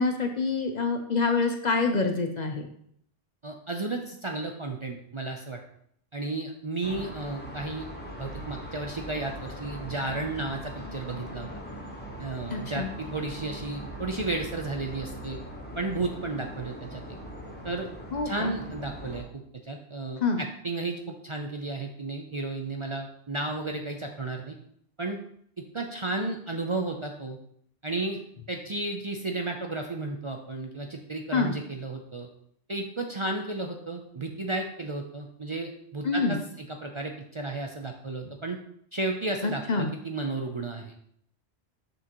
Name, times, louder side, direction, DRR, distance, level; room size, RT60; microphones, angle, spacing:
voice 1, 0.0-2.7 12.5-12.9 18.1-18.5 20.2-20.4 31.3-31.6 36.0-36.4 39.4-39.9, left 4 dB, 50° left, 5 dB, 0.7 m, -26 dB
voice 2, 3.4-5.6 6.1-7.9 8.2-11.5 12.2-15.4 15.8-17.2 17.6-17.9 18.2-24.6 25.0-25.2 25.6-27.4 27.8-28.2 28.5-32.3 32.7-38.6 38.9-40.9, right 2 dB, 35° right, 2 dB, 0.5 m, -33 dB
sound 1, 6.8-19.2, equal, 10° left, 1.1 m, -40 dB
6.9 x 6.3 x 3.0 m, 0.67 s
omnidirectional pair, 1.1 m